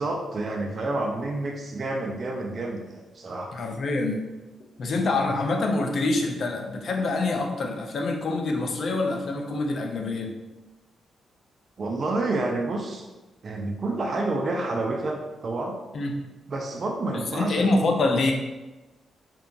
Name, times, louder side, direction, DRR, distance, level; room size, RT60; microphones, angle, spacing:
voice 1, 0.0-3.5 11.8-13.0 13.4-15.7 16.5-17.7, right 2 dB, 45° right, 1 dB, 0.3 m, -29 dB
voice 2, 3.5-4.3 4.8-10.3 15.9-16.1 17.3-18.3, left 2 dB, 55° left, 3 dB, 0.4 m, -25 dB
2.8 x 2.2 x 2.5 m, 1.1 s
cardioid pair, 105°, 0 cm